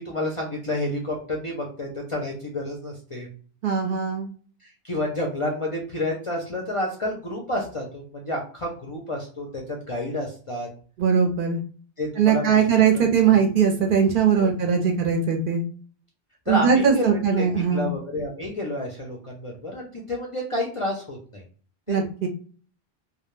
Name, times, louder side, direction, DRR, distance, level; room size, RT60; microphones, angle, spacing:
voice 1, 0.0-3.3 4.6-10.7 12.0-12.6 12.9-13.4 14.4-14.5 16.5-21.4 21.9-22.0, left 1 dB, 45° left, -1 dB, 0.4 m, -30 dB
voice 2, 3.6-4.3 11.0-11.6 12.2-15.6 16.5-17.9 21.9-22.3, right 7 dB, 60° right, 2 dB, 0.7 m, -20 dB
2.2 x 2.1 x 3.0 m, 0.42 s
omnidirectional pair, 1.1 m